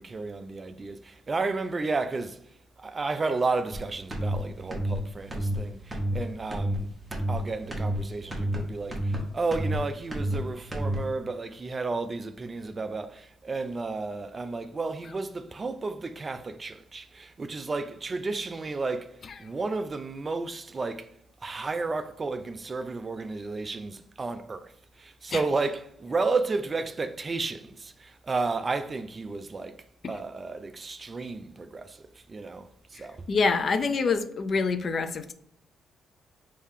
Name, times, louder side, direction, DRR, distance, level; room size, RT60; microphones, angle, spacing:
voice 1, 0.0-2.4 2.8-6.9 7.3-21.1 21.4-29.7 30.1-33.3, right 3 dB, 30° right, 0.3 m, -32 dB
sound 1, 3.7-3.8 4.1-4.4 4.7-5.0 5.3-5.6 5.9-6.2 6.5-6.8 7.1-7.4 7.7-8.0 8.3-8.6 8.9-9.2 9.5-9.8 10.1-10.4 10.7-11.0, right 1 dB, 10° right, 1.0 m, -29 dB
voice 2, 33.0-35.3, left 4 dB, 45° left, 0.4 m, -26 dB
3.3 x 2.7 x 3.6 m
cardioid pair, 90°, 0 cm